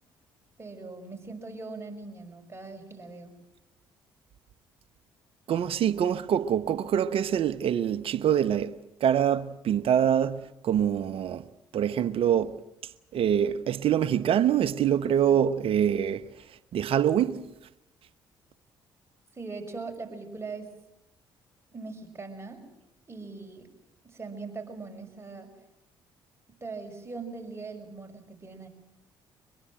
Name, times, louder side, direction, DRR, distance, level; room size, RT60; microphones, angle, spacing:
voice 1, 0.6-3.3 15.3-15.4 19.3-20.7 21.7-22.6 23.1-23.7 24.0-25.5 26.6-28.7, right 3 dB, 25° right, 6.1 m, -40 dB
voice 2, 5.5-8.7 9.0-11.4 11.7-12.6 13.1-16.3 16.7-17.5, right 9 dB, 60° right, 1.1 m, -25 dB
23.5 x 21.5 x 7.6 m
hypercardioid pair, 55°, 11 cm